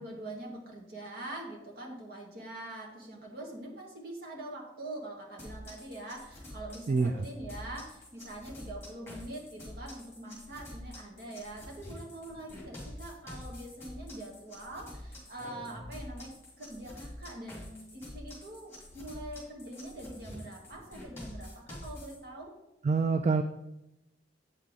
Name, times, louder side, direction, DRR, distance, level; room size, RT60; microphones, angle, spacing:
voice 1, 0.0-16.3 16.6-22.5, right 1 dB, 60° right, -1 dB, 1.8 m, -44 dB
sound 1, 5.4-22.2, left 1 dB, 15° left, 2.5 m, -46 dB
voice 2, 22.8-23.4, right 4 dB, 40° right, 8 dB, 0.3 m, -25 dB
8.1 x 5.7 x 3.7 m, 0.90 s
head